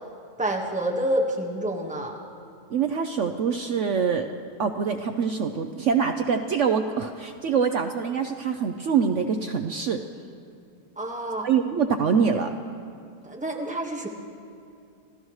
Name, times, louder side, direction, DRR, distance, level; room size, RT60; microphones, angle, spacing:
voice 1, 0.4-2.2 11.0-11.5 13.2-14.1, right 1 dB, 5° right, -1 dB, 1.3 m, -28 dB
voice 2, 2.7-4.3 4.6-10.0 11.4-12.6, right 6 dB, 65° right, 6 dB, 0.7 m, -24 dB
29.0 x 15.0 x 3.2 m, 2.5 s
omnidirectional pair, 1.8 m